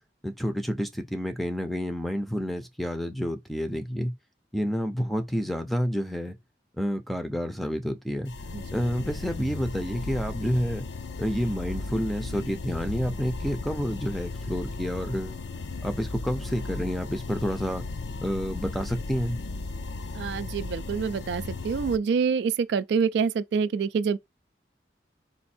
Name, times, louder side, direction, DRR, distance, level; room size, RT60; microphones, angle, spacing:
voice 1, 0.2-4.1 4.5-6.4 6.8-8.3 8.7-10.9 11.2-15.4 15.8-17.9 18.2-19.4, equal, ahead, 0.5 m, -29 dB
sound 1, 8.3-22.0, left 3 dB, 80° left, 0.5 m, -36 dB
voice 2, 20.2-24.2, right 6 dB, 70° right, 0.3 m, -26 dB
4.2 x 2.6 x 4.2 m
head